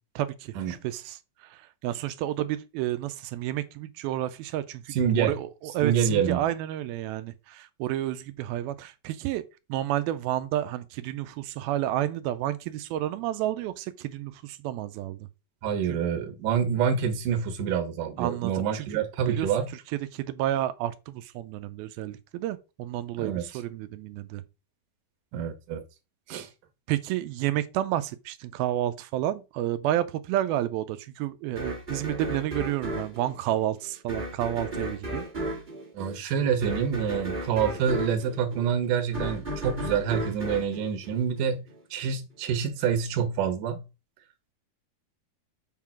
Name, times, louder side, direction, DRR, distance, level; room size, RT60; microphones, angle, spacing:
voice 1, 0.2-9.4 9.7-15.3 15.9-16.0 18.2-19.0 19.3-19.5 19.9-24.4 26.9-35.2, right 13 dB, 85° right, 2.5 m, -30 dB
voice 2, 4.9-5.3 5.8-6.4 15.6-19.7 23.2-23.4 25.3-25.8 26.3-26.5 35.9-41.6 41.9-43.8, right 7 dB, 65° right, 2.6 m, -27 dB
sound 1, 31.6-41.8, right 1 dB, 30° right, 0.8 m, -35 dB
7.4 x 3.8 x 5.9 m
omnidirectional pair, 4.4 m